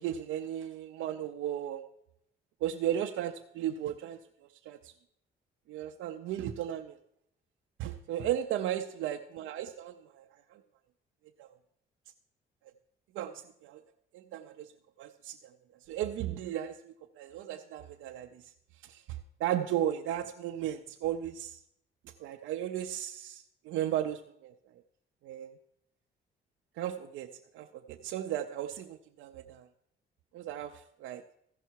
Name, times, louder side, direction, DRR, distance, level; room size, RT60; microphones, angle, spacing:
voice 1, 0.0-1.8 2.6-4.2 4.7-4.9 5.7-7.0 7.8-10.2 10.5-10.6 11.4-11.5 13.1-13.3 13.6-13.8 14.1-14.7 15.0-15.3 15.9-18.4 18.8-21.6 22.2-24.5 25.2-25.5 26.8-27.3 27.5-29.7 30.3-31.2, right 11 dB, 90° right, 4 dB, 0.5 m, -35 dB
15.0 x 5.6 x 4.6 m, 0.74 s
cardioid pair, 90°, 20 cm